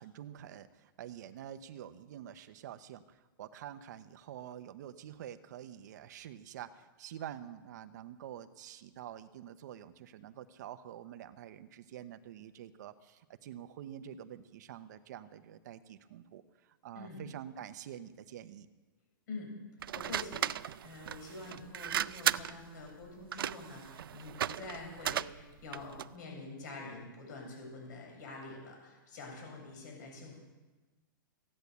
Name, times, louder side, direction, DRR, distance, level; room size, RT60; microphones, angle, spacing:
voice 1, 0.0-18.7, right 10 dB, 55° right, 11 dB, 0.8 m, -47 dB
sound 1, 19.8-26.2, right 10 dB, 80° right, 0.5 m, -36 dB
voice 2, 19.9-20.5 20.8-30.4, left 3 dB, 55° left, 1 dB, 7.5 m, -46 dB
15.5 x 10.5 x 8.2 m, 1.2 s
hypercardioid pair, 160°, 12 cm